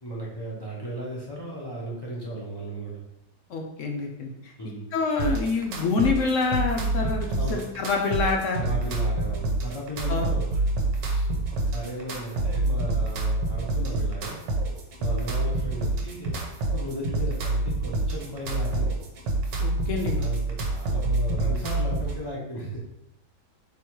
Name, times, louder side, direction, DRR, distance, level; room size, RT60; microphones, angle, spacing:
voice 1, 0.0-3.0 4.6-4.9 7.4-7.6 8.6-10.6 11.0-11.3 11.7-14.4 15.0-19.0 20.1-22.8, right 1 dB, 35° left, -6 dB, 0.3 m, -36 dB
voice 2, 3.5-4.5 4.9-8.6 10.1-10.3 19.6-20.2, left 4 dB, 70° left, 2 dB, 0.7 m, -26 dB
sound 1, 5.2-22.2, right 2 dB, 80° right, 1.5 m, -27 dB
3.6 x 3.0 x 4.5 m, 0.84 s
omnidirectional pair, 1.9 m